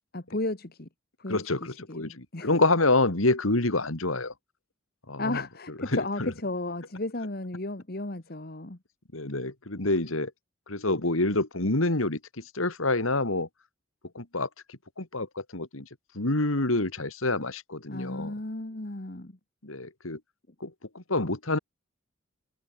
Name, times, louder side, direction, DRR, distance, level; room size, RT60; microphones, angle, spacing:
voice 1, 0.1-0.9 1.2-2.5 5.2-8.8 17.9-19.4, left 2 dB, 45° left, 1.6 m, -34 dB
voice 2, 1.3-4.3 5.1-5.4 5.8-6.3 9.1-10.3 10.7-13.5 14.1-14.5 15.0-15.9 16.1-18.3 19.6-20.2 20.6-21.6, left 2 dB, 80° left, 2.9 m, -27 dB
head